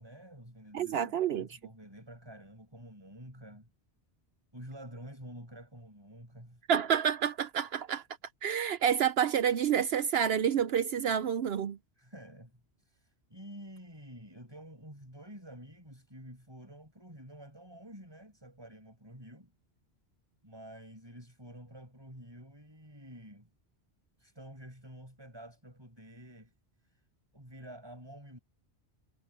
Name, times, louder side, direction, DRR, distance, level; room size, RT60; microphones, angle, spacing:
voice 1, 0.0-3.7 4.5-6.6 12.0-12.5 12.8-19.5 20.4-23.5 24.2-26.5 26.8-27.0 27.3-28.4, right 1 dB, 20° right, 6.4 m, -49 dB
voice 2, 0.7-1.5 6.7-8.0 8.4-11.8, right 8 dB, 70° right, 0.8 m, -28 dB
omnidirectional pair, 1.1 m